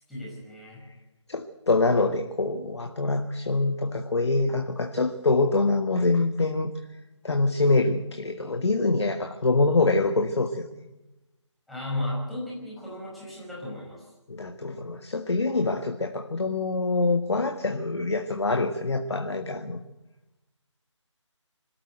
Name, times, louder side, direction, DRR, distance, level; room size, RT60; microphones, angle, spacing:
voice 1, 0.1-0.8 11.7-14.0, left 1 dB, ahead, -7 dB, 5.6 m, -34 dB
voice 2, 1.3-6.7 7.2-10.8 14.3-19.8, left 3 dB, 60° left, 5 dB, 1.6 m, -25 dB
25.5 x 13.5 x 8.0 m, 1.0 s
figure-of-eight pair, 160°, 16 cm